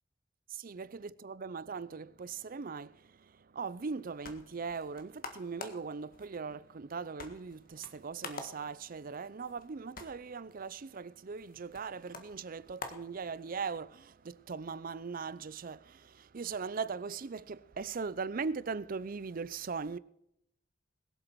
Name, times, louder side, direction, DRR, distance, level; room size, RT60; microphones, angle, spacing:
voice 1, 0.5-3.1 3.5-20.0, right 5 dB, 50° right, 0.5 m, -40 dB
sound 1, 3.8-13.8, left 3 dB, 50° left, 1.7 m, -49 dB
21.5 x 7.8 x 4.6 m
head